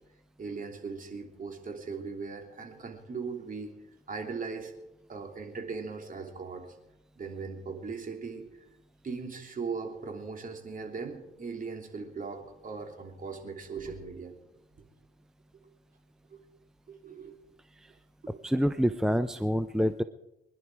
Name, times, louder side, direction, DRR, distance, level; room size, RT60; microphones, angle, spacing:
voice 1, 0.4-3.7 4.1-4.7 5.1-6.7 7.2-8.5 9.0-14.3 16.3-16.4 16.9-17.3 18.2-18.4, right 4 dB, 45° right, 3 dB, 3.3 m, -39 dB
voice 2, 18.4-20.0, equal, 5° right, 11 dB, 0.6 m, -27 dB
25.0 x 11.0 x 4.8 m, 0.90 s
cardioid pair, 90°, 20 cm